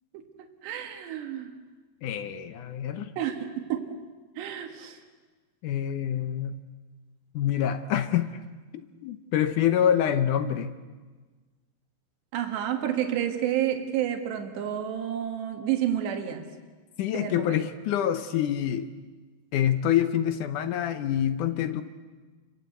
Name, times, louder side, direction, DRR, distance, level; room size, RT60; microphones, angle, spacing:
voice 1, 0.1-1.5 3.2-3.8 4.4-5.0 12.3-16.5 17.1-17.6, right 10 dB, 85° right, 4 dB, 3.9 m, -30 dB
voice 2, 2.0-3.1 5.6-6.6 7.3-8.4 9.0-10.7 17.0-18.9 19.5-21.8, left 10 dB, 70° left, 10 dB, 1.9 m, -26 dB
30.0 x 24.5 x 8.2 m, 1.3 s
omnidirectional pair, 4.8 m